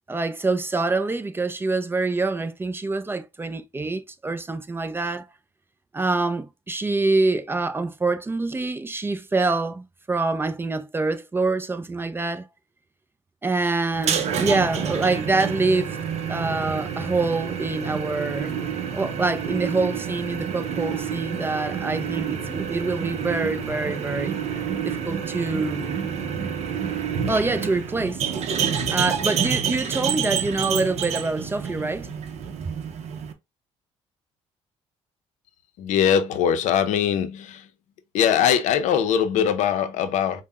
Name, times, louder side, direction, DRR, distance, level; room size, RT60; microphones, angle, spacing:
voice 1, 0.1-5.2 5.9-12.5 13.4-16.0 16.3-18.5 18.9-24.4 24.8-26.0 27.3-28.2 28.7-32.1, right 3 dB, 15° right, 0.4 m, -25 dB
sound 1, 13.9-33.3, right 7 dB, 60° right, 0.6 m, -28 dB
voice 2, 35.8-37.7 38.1-40.4, left 8 dB, 75° left, 0.6 m, -21 dB
5.4 x 2.1 x 2.2 m
cardioid pair, 90°, 13 cm